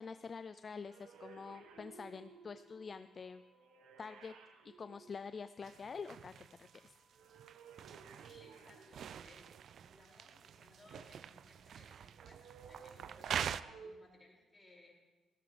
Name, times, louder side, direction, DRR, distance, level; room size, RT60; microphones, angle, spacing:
voice 1, 0.0-3.4 4.0-4.4 4.6-6.3 6.6-6.9, left 5 dB, 40° left, 12 dB, 0.4 m, -47 dB
sound 1, 0.9-5.9 7.1-9.7 12.1-13.9, right 5 dB, 90° right, 1.3 m, -58 dB
sound 2, 1.9-8.9, equal, 70° left, 2.7 m, -75 dB
sound 3, 5.6-13.6, right 8 dB, 60° right, 0.4 m, -45 dB
voice 2, 8.0-14.9, left 2 dB, 15° left, -3 dB, 5.7 m, -63 dB
16.0 x 15.5 x 3.3 m, 1.2 s
cardioid pair, 90°, 0 cm